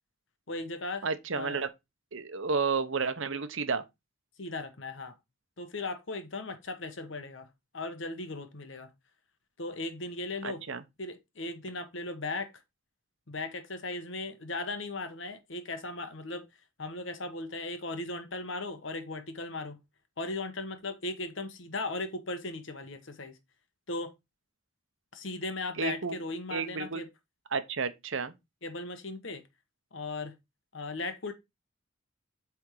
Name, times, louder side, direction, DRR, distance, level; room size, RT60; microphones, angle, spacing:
voice 1, 0.5-1.1 1.3-1.6 4.4-5.1 5.6-7.5 7.7-8.9 9.6-10.6 11.0-12.5 13.3-16.4 16.8-19.8 20.2-23.3 23.9-24.1 25.1-27.1 28.6-29.4 29.9-30.3 30.7-31.3, left 2 dB, 60° left, 1.2 m, -37 dB
voice 2, 1.0-1.7 2.1-3.8 10.4-10.8 25.8-26.2 26.5-27.0 27.5-28.3, right 5 dB, 65° right, 0.9 m, -31 dB
8.5 x 3.6 x 4.6 m
head